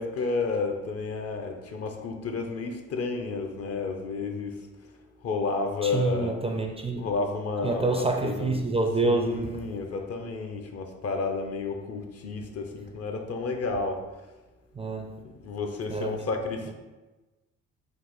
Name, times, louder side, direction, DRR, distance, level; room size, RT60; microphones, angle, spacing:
voice 1, 0.0-4.7 5.2-6.3 7.0-8.5 9.0-14.0 15.4-16.7, left 3 dB, 50° left, 0.7 m, -31 dB
voice 2, 5.8-7.1 7.6-9.7 14.7-15.2 15.9-16.3, right 3 dB, 20° right, 0.4 m, -27 dB
3.9 x 2.5 x 3.8 m
cardioid pair, 85°, 31 cm